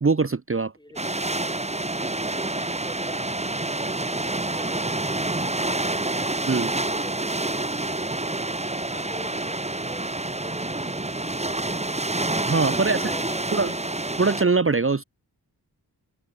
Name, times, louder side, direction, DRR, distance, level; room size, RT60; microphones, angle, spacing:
voice 1, 0.0-0.7 6.5-6.7 12.5-13.0 13.5-13.7 14.2-15.0, right 4 dB, 30° right, 1.0 m, -22 dB
voice 2, 0.8-1.2 2.0-5.6 6.7-8.4 8.8-11.9 12.9-13.8, left 1 dB, 10° left, 2.9 m, -46 dB
sound 1, 1.0-14.4, right 2 dB, 15° right, 1.6 m, -28 dB
wide cardioid pair, 105°, 40 cm